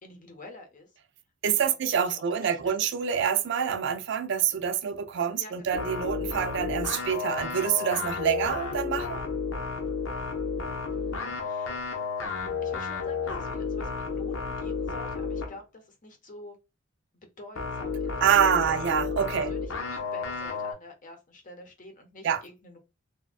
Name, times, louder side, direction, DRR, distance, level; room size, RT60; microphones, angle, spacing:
voice 1, 0.0-0.9 1.6-2.9 5.4-5.9 10.9-11.9 12.6-16.6 17.1-18.8 19.3-22.8, left 2 dB, 40° left, 0.7 m, -48 dB
voice 2, 1.4-9.2 18.2-19.5 22.2-22.4, right 8 dB, 60° right, 0.4 m, -26 dB
sound 1, 5.7-15.6 17.5-20.7, left 5 dB, 80° left, 0.8 m, -32 dB
3.3 x 2.2 x 2.3 m
head